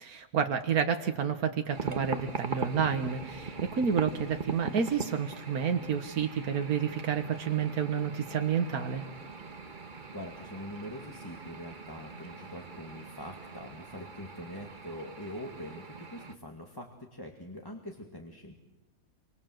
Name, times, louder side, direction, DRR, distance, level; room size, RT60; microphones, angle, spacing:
voice 1, 0.0-9.0, right 7 dB, 90° right, 6 dB, 1.8 m, -30 dB
sound 1, 1.7-16.4, right 4 dB, 35° right, 1.4 m, -41 dB
voice 2, 10.1-18.6, equal, 15° left, 2 dB, 2.1 m, -43 dB
28.0 x 25.5 x 7.8 m, 1.1 s
omnidirectional pair, 1.5 m